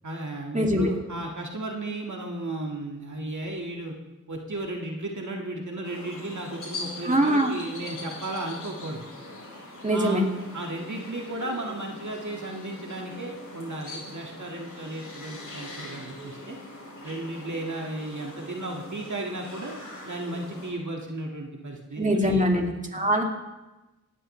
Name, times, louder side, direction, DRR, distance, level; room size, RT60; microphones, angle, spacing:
voice 1, 0.0-3.9 4.3-9.1 9.9-10.3 10.5-16.6 17.0-19.8 20.0-22.4, right 2 dB, 65° right, 0 dB, 2.0 m, -34 dB
voice 2, 0.5-0.9 7.0-7.5 9.8-10.3 22.0-23.2, equal, 25° right, 1 dB, 2.5 m, -23 dB
sound 1, 5.8-20.7, left 2 dB, 80° left, 4.7 m, -42 dB
19.0 x 14.5 x 3.3 m, 1.1 s
cardioid pair, 50°, 32 cm